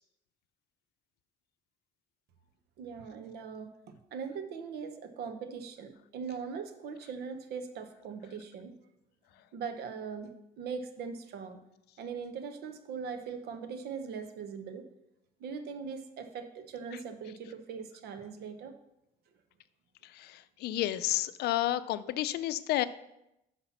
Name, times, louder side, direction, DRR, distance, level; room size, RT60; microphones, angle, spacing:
voice 1, 2.8-3.7 4.1-8.7 9.5-11.6 12.0-14.8 15.4-18.7, right 6 dB, 70° right, 8 dB, 0.9 m, -40 dB
voice 2, 20.0-22.9, left 14 dB, 75° left, 14 dB, 0.5 m, -31 dB
5.8 x 5.7 x 5.8 m, 0.85 s
cardioid pair, 110°, 17 cm